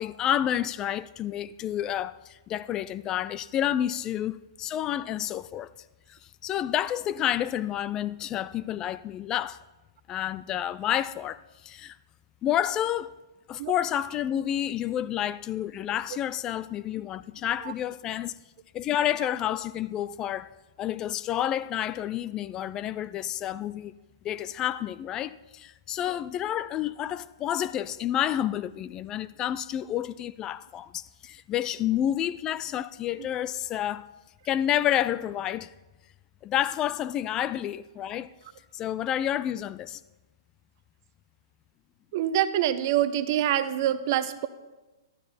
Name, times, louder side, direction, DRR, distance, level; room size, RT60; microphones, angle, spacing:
voice 1, 0.0-5.7 6.1-9.6 10.1-12.0 12.4-13.1 13.5-18.4 18.7-20.5 20.8-23.9 24.2-34.1 34.5-35.7 36.4-38.3 38.7-40.0, left 11 dB, 25° left, 0.3 m, -29 dB
voice 2, 42.1-44.5, right 11 dB, 50° right, 0.8 m, -25 dB
12.5 x 12.0 x 4.3 m
hypercardioid pair, 125°, 2 cm